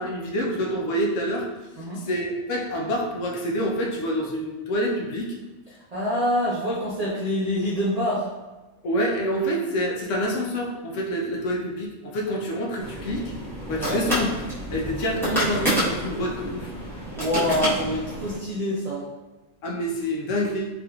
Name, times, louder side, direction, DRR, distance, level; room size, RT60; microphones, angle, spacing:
voice 1, 0.0-1.5 2.0-5.3 8.8-13.3 13.6-14.3 14.7-16.7 19.6-20.7, equal, 70° left, -1 dB, 0.9 m, -27 dB
voice 2, 5.9-8.3 13.8-14.0 17.1-19.1, equal, 55° right, -8 dB, 0.4 m, -26 dB
sound 1, 12.8-18.4, equal, ahead, 0.8 m, -29 dB
3.3 x 2.9 x 2.3 m, 1.1 s
omnidirectional pair, 1.4 m